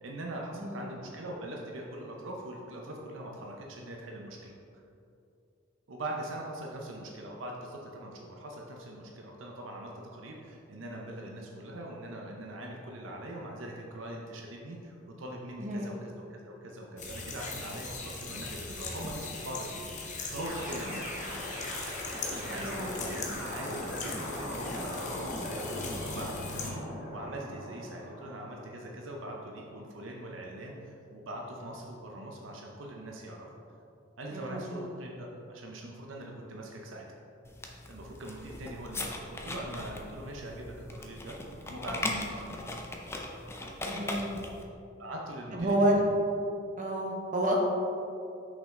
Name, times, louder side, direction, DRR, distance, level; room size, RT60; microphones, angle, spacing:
voice 1, 0.0-4.5 5.9-21.0 22.3-26.8 27.1-33.5 34.2-37.0 37.9-41.4 41.7-42.6 45.0-46.0, right 1 dB, 70° right, -1 dB, 0.7 m, -42 dB
voice 2, 0.5-0.9 15.6-15.9 22.5-22.9 34.3-34.8 43.8-44.4 45.5-46.0 46.8-47.5, right 1 dB, 40° right, -1 dB, 0.9 m, -30 dB
sound 1, 17.0-26.7, left 3 dB, 40° left, 0.9 m, -40 dB
sound 2, 20.4-28.5, equal, 10° right, 1.5 m, -39 dB
sound 3, 37.4-44.6, left 2 dB, 15° left, 0.5 m, -39 dB
6.2 x 5.4 x 3.7 m, 2.7 s
head